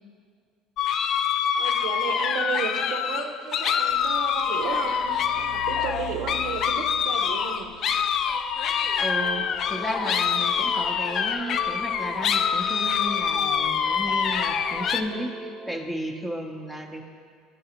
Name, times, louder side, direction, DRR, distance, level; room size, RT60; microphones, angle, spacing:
sound 1, 0.8-15.0, left 7 dB, 50° left, 0.3 m, -25 dB
voice 1, 1.6-7.7 17.0-17.1, right 6 dB, 75° right, 6 dB, 0.5 m, -33 dB
Truck, 3.7-15.1, right 2 dB, 75° left, 1.0 m, -47 dB
voice 2, 9.0-17.0, equal, 5° left, 3 dB, 0.7 m, -34 dB
sound 2, 9.2-15.9, right 3 dB, 35° right, 0.6 m, -42 dB
10.5 x 4.7 x 2.9 m, 2.1 s
supercardioid pair, 110°, 0 cm